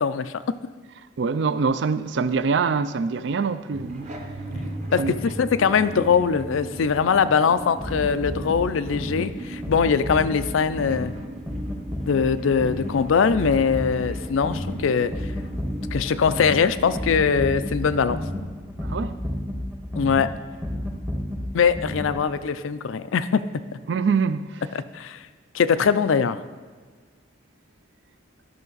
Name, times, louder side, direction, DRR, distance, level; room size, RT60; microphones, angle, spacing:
voice 1, 0.0-0.4 4.9-11.1 12.1-15.1 15.9-18.2 20.0-20.3 21.5-23.4 24.7-25.2 25.5-26.4, left 6 dB, 85° left, 0.4 m, -22 dB
voice 2, 1.2-4.1 5.0-5.1 18.8-19.1 23.9-24.6, right 5 dB, 65° right, 0.4 m, -24 dB
sound 1, 3.7-18.0, right 1 dB, 35° right, 1.0 m, -37 dB
sound 2, 7.8-22.5, left 1 dB, 10° right, 0.8 m, -32 dB
12.5 x 5.9 x 4.0 m
head